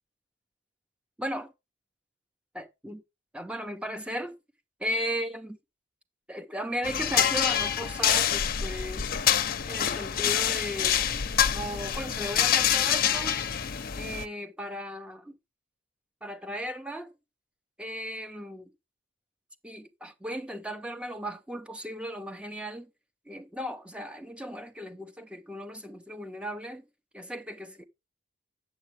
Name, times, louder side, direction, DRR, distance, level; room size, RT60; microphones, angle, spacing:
voice 1, 1.2-1.5 2.5-3.0 3.3-4.3 4.8-5.6 6.3-9.1 9.7-11.0 11.5-13.4 14.0-15.3 16.2-17.1 17.8-18.7 19.6-22.9 23.3-26.8 27.1-27.9, equal, 5° right, 0.6 m, -36 dB
sound 1, 6.8-14.3, left 9 dB, 45° left, 0.6 m, -26 dB
8.4 x 7.4 x 3.2 m
head